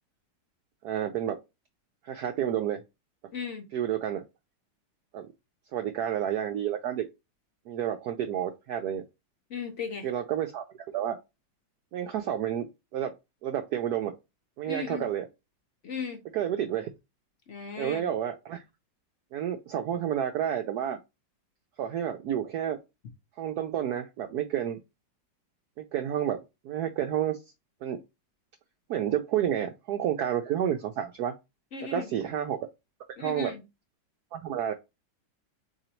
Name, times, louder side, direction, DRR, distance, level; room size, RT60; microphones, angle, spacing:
voice 1, 0.8-1.4 2.0-2.8 3.7-4.2 5.1-5.3 5.7-7.0 7.7-9.0 10.0-10.6 10.9-11.2 11.9-12.7 12.9-13.1 13.4-14.1 14.6-15.2 16.3-16.9 17.8-18.6 19.3-21.0 21.8-22.8 23.4-24.8 25.8-27.4 27.8-28.0 28.9-31.3 31.9-32.6 33.2-33.5 34.3-34.7, right 10 dB, 70° right, 1.0 m, -30 dB
voice 2, 3.3-3.7 9.5-10.1 14.7-15.1 15.8-16.2 17.5-18.1 31.7-32.1 33.2-33.6, left 5 dB, 60° left, 0.8 m, -36 dB
3.9 x 3.1 x 4.3 m
omnidirectional pair, 2.0 m